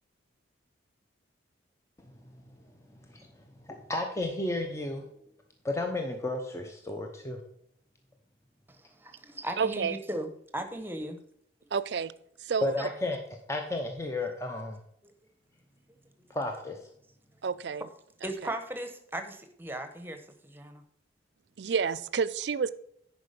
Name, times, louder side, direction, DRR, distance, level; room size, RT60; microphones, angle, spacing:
voice 1, 3.9-5.0 5.6-7.4 12.6-13.2 13.5-14.8 16.3-16.8, left 2 dB, 15° left, 0.7 m, -32 dB
voice 2, 8.7-11.2 12.8-12.9 15.0-15.1 18.2-20.8, right 1 dB, 10° right, 1.0 m, -37 dB
voice 3, 9.6-9.9 11.7-12.1 12.4-12.7 17.4-17.8 21.6-22.7, right 6 dB, 65° right, 0.4 m, -29 dB
10.5 x 4.8 x 5.2 m
head